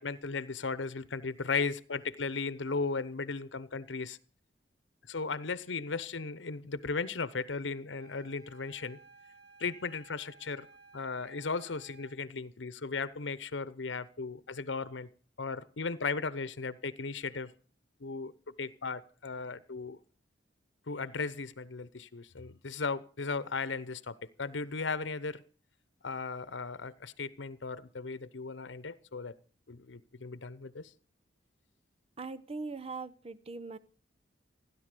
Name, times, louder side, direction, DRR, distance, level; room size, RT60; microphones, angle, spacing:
voice 1, 0.0-4.2 5.0-9.0 9.6-10.7 10.9-15.1 15.4-17.5 18.0-20.0 20.9-25.4 26.0-29.3 29.7-30.9, left 4 dB, 85° left, 0.9 m, -36 dB
sound 1, 8.0-12.2, right 4 dB, 70° right, 2.9 m, -57 dB
voice 2, 32.2-33.8, right 3 dB, 35° right, 0.9 m, -40 dB
16.0 x 11.0 x 6.7 m
head